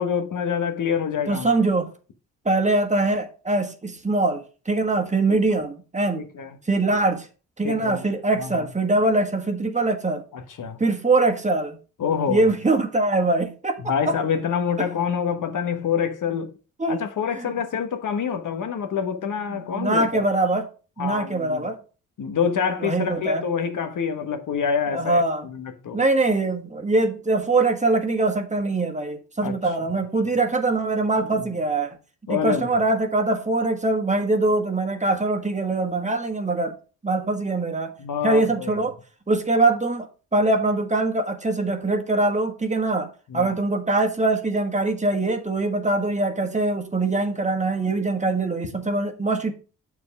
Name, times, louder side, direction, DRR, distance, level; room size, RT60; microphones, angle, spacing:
voice 1, 0.0-1.5 5.3-5.4 6.1-6.6 7.6-8.0 8.4-8.5 10.3-10.8 12.0-12.4 13.8-16.6 16.9-20.3 21.0-21.7 22.2-26.0 29.4-29.5 29.9-30.0 31.2-31.5 32.3-32.8 38.0-38.8 43.3-43.5, left 7 dB, 60° left, 1.2 m, -26 dB
voice 2, 1.3-1.9 2.4-6.2 6.7-7.3 7.6-10.2 10.8-11.8 12.3-13.8 14.1-14.2 14.8-14.9 16.8-17.0 17.4-17.5 19.5-20.7 21.0-21.8 22.8-23.4 24.9-25.5 25.9-31.9 32.3-36.7 37.0-37.9 38.2-38.9 39.3-40.1 40.3-49.5, right 2 dB, 20° right, 1.4 m, -23 dB
7.3 x 4.7 x 5.2 m
cardioid pair, 70°, 35 cm